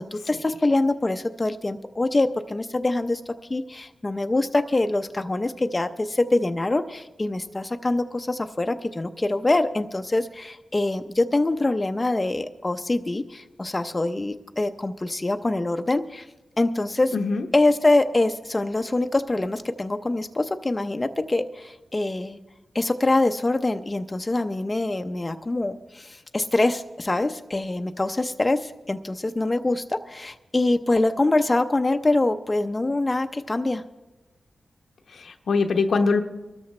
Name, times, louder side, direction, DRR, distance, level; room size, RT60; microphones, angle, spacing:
voice 1, 0.0-16.3 16.6-17.1 17.5-22.4 22.7-33.8, left 2 dB, 25° left, 7 dB, 0.6 m, -24 dB
voice 2, 17.1-17.5 35.1-36.2, left 4 dB, 80° left, 5 dB, 0.9 m, -22 dB
23.5 x 13.5 x 3.2 m, 1.1 s
cardioid pair, 75°, 0 cm